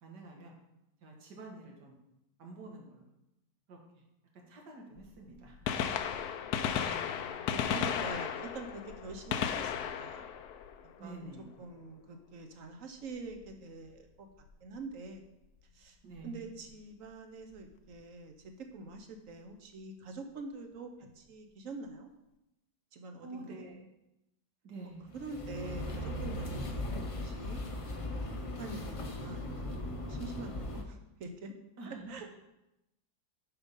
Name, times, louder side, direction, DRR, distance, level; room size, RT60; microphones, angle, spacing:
voice 1, 0.0-0.5 1.0-2.0 2.4-3.1 3.7-3.8 4.3-5.7 11.0-11.5 16.0-16.4 23.2-23.8 24.6-25.1 25.7-25.8 31.8-32.1, right 2 dB, 85° right, 0 dB, 2.1 m, -48 dB
Gunshot gunfire, 5.0-5.1 5.5-11.4 13.3-13.5 14.5-14.6 16.2-16.3 17.6-17.7 17.9-18.0, left 8 dB, 75° left, 1.1 m, -35 dB
voice 2, 6.7-10.3 11.0-11.3 11.6-14.3 14.6-15.2 15.7-16.0 16.2-22.1 22.9-23.7 25.1-27.6 28.1-31.5 31.9-32.4, right 3 dB, 55° right, 5 dB, 1.2 m, -45 dB
sound 1, 25.0-30.8, left 1 dB, 50° left, 0.4 m, -38 dB
7.1 x 5.4 x 5.4 m, 0.90 s
omnidirectional pair, 1.8 m